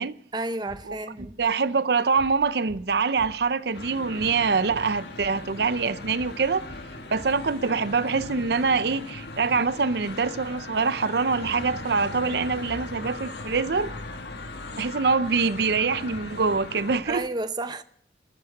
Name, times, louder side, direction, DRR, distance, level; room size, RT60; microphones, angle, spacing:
voice 1, 0.3-1.4 17.1-17.8, right 2 dB, 25° right, 0.6 m, -31 dB
Drum kit / Drum, 0.7-1.9 2.2-2.4 2.7-5.8 6.2-7.4 7.7-7.9 8.2-8.5, right 1 dB, 85° right, 2.9 m, -47 dB
voice 2, 0.9-6.7 7.1-13.9 14.8-17.2, right 4 dB, 60° right, 0.6 m, -25 dB
sound 1, 3.7-17.0, left 2 dB, 65° left, 1.6 m, -39 dB
sound 2, 11.4-17.3, left 2 dB, 90° left, 1.2 m, -43 dB
13.5 x 10.5 x 8.6 m
head